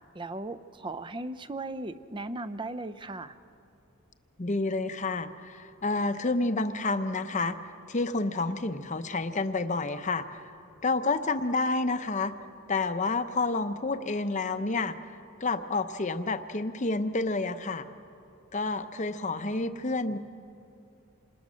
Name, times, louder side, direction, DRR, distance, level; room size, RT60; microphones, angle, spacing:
voice 1, 0.1-3.4, right 2 dB, 20° right, 13 dB, 0.5 m, -37 dB
voice 2, 4.4-10.4 10.8-12.3 12.7-15.0 15.4-17.9 18.5-20.2, left 3 dB, 35° left, 9 dB, 0.7 m, -29 dB
27.0 x 20.5 x 6.3 m, 2.6 s
head